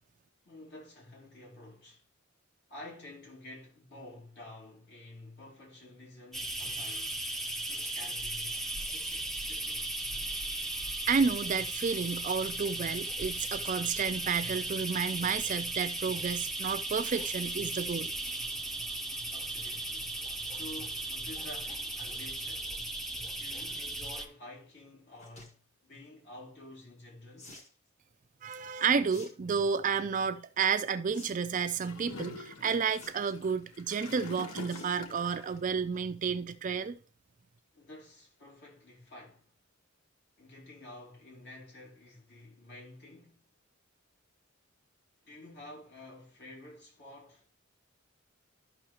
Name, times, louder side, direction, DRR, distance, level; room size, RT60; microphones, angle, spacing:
voice 1, 0.4-2.0 2.7-7.2 7.7-9.9 19.3-22.8 23.4-27.5 37.7-39.5 40.4-43.5 45.2-47.5, left 1 dB, 55° left, 2.7 m, -50 dB
sound 1, 6.3-24.3, right 2 dB, ahead, 0.6 m, -36 dB
voice 2, 11.1-18.1 28.4-37.0, right 6 dB, 35° right, 0.4 m, -31 dB
sound 2, 25.1-25.5 27.4-27.7 29.1-29.3 29.7-30.0 31.1-31.3 31.6-31.7 32.9-33.4 34.7-34.9 35.3-35.6 36.0-36.1 36.2-36.3, left 2 dB, 35° left, 1.5 m, -51 dB
Gurgling / Toilet flush, 31.8-35.6, left 3 dB, 75° left, 0.9 m, -45 dB
13.0 x 5.7 x 2.9 m
head